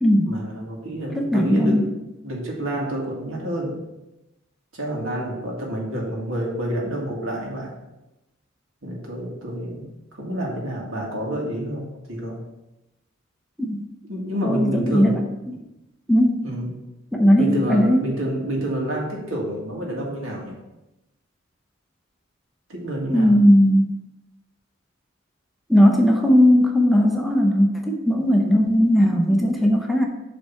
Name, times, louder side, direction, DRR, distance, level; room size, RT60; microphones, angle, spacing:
voice 1, 0.2-2.0 2.2-3.8 4.7-7.7 8.8-12.5 14.0-15.3 16.4-16.7 17.4-20.6 22.7-23.4, right 1 dB, 85° right, -2 dB, 1.9 m, -28 dB
voice 2, 1.2-1.8 13.6-13.8 14.4-15.2 16.1-16.4 17.1-18.0 23.1-23.9 25.7-30.1, equal, ahead, 0 dB, 0.6 m, -17 dB
7.0 x 3.5 x 5.6 m, 0.95 s
head